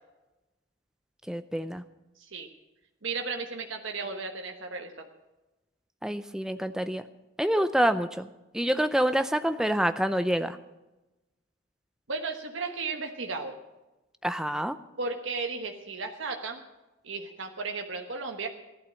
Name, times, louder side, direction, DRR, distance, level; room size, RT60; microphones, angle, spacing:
voice 1, 1.3-1.8 6.0-7.0 7.4-8.3 8.5-10.6 14.2-14.8, equal, 5° right, 10 dB, 0.5 m, -27 dB
voice 2, 3.0-5.1 12.1-13.6 15.0-16.6 17.0-18.5, right 4 dB, 80° right, 3 dB, 1.2 m, -34 dB
15.0 x 11.5 x 6.3 m, 1.0 s
head